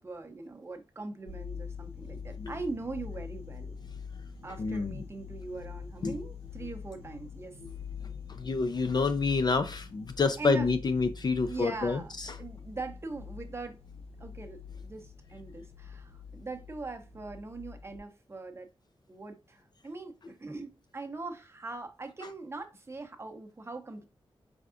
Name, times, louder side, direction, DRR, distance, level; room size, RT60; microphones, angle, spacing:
voice 1, 0.0-3.8 4.4-7.6 10.4-10.7 11.4-13.8 14.2-18.7 19.1-24.1, right 3 dB, 25° right, 0.6 m, -41 dB
sound 1, 1.3-18.0, left 6 dB, 80° left, 0.8 m, -45 dB
voice 2, 4.6-5.0 6.0-6.1 8.3-12.3, left 4 dB, 45° left, 0.3 m, -28 dB
4.6 x 3.5 x 2.4 m
wide cardioid pair, 95°, 10 cm